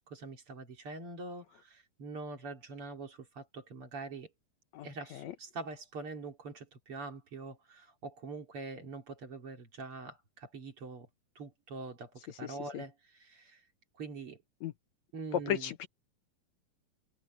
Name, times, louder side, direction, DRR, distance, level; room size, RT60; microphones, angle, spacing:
voice 1, 0.0-4.3 4.8-11.1 11.4-12.1 12.4-13.6 14.0-14.4 15.1-15.7, right 3 dB, 45° right, 3.4 m, -44 dB
voice 2, 12.4-12.8 14.6-14.7 15.3-15.9, left 10 dB, 70° left, 2.0 m, -35 dB
omnidirectional pair, 3.5 m